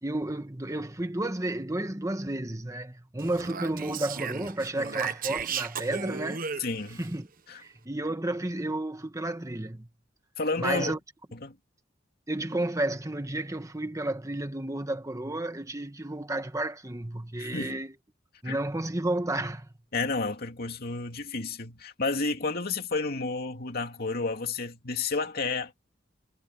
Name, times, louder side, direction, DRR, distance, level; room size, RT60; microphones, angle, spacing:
voice 1, 0.0-6.4 7.0-7.3 7.6-9.9 10.6-11.0 12.3-17.9 18.4-19.7, right 1 dB, 20° right, 1.3 m, -32 dB
Speech, 3.2-7.1, right 6 dB, 50° right, 1.1 m, -35 dB
voice 2, 6.6-7.0 7.5-7.6 10.4-10.9 11.4-11.5 17.4-17.7 18.4-18.6 19.9-25.7, left 3 dB, 55° left, 2.7 m, -31 dB
head